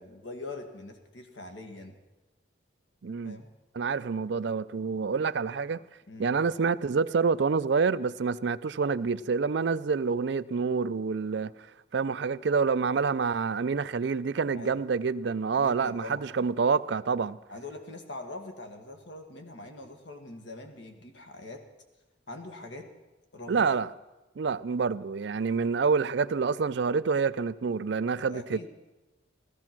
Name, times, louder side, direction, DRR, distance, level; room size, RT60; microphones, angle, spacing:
voice 1, 0.0-2.0 3.2-3.5 6.1-6.4 14.5-14.8 15.5-16.2 17.5-21.6 22.3-22.9 23.3-23.7 28.3-28.7, left 2 dB, 65° left, 1.8 m, -43 dB
voice 2, 3.0-3.4 3.7-5.8 6.2-11.5 11.9-17.4 23.5-23.9 24.4-28.7, right 5 dB, 60° right, 0.4 m, -27 dB
15.0 x 14.5 x 6.0 m
head